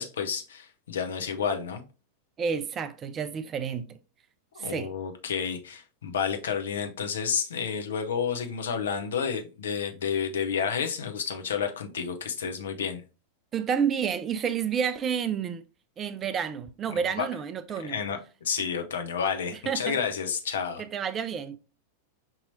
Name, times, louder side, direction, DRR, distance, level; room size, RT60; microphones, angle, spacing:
voice 1, 0.0-1.8 4.5-13.0 16.9-17.3 17.8-20.8, left 6 dB, 65° left, 0.6 m, -30 dB
voice 2, 2.4-4.0 4.6-4.9 13.5-15.6 16.0-18.0 19.7-20.0 20.8-21.6, right 7 dB, 25° right, 0.4 m, -30 dB
5.4 x 2.9 x 2.6 m
figure-of-eight pair, 90°, 0 cm